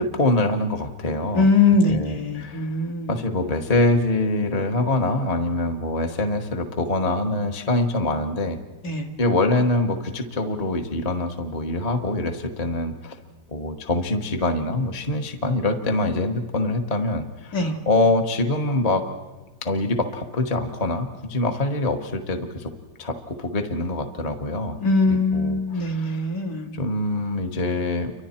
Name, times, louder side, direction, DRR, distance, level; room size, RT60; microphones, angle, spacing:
voice 1, 0.0-1.5 1.9-2.7 3.1-8.6 9.2-13.2 13.5-19.1 19.6-22.7 23.0-24.8 25.1-26.3 26.7-28.1, left 2 dB, 25° left, 4 dB, 0.9 m, -24 dB
voice 2, 1.3-3.1 8.8-9.1 17.5-17.8 24.8-26.8, left 3 dB, 50° left, -1 dB, 2.4 m, -21 dB
29.5 x 24.0 x 4.4 m, 1.2 s
omnidirectional pair, 2.1 m